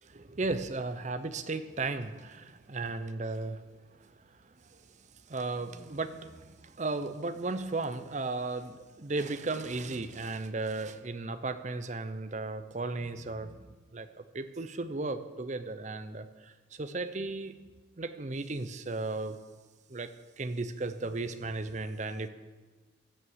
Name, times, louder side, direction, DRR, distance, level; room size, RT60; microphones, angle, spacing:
voice 1, 0.0-3.6 3.9-17.6 18.0-19.4 19.9-20.1 20.4-22.3, right 3 dB, 35° right, 11 dB, 0.6 m, -35 dB
15.5 x 5.7 x 7.3 m, 1.3 s
head